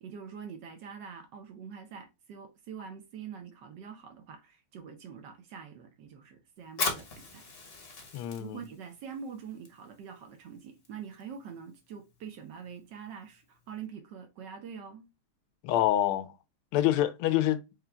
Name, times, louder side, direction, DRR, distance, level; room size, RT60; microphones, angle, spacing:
voice 1, 0.0-7.5 8.4-15.1, right 7 dB, 70° right, 1.1 m, -45 dB
Fire, 6.6-13.9, left 3 dB, 45° left, 0.8 m, -41 dB
voice 2, 8.1-8.6 15.6-16.3 16.7-17.6, left 12 dB, 90° left, 1.5 m, -26 dB
4.9 x 3.0 x 2.3 m
omnidirectional pair, 2.3 m